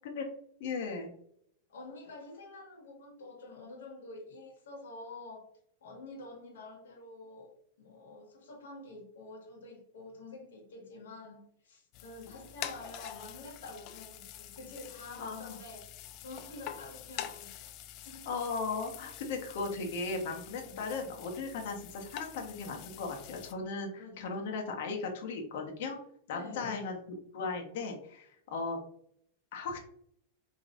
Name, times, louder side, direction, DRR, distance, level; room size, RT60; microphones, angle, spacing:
voice 1, 0.6-1.1 15.2-15.6 18.3-26.0 26.3-26.9 27.3-28.8 29.5-29.8, left 4 dB, 65° left, 2 dB, 1.1 m, -37 dB
voice 2, 1.7-5.5 5.8-15.9 16.2-17.7 18.0-18.3 20.6-20.8 24.0-24.5 26.3-27.0 29.6-29.7, left 2 dB, 90° left, -2 dB, 1.7 m, -48 dB
sound 1, 11.9-23.5, left 11 dB, 45° left, 0.4 m, -46 dB
5.0 x 3.1 x 2.5 m, 0.69 s
supercardioid pair, 140°, 0 cm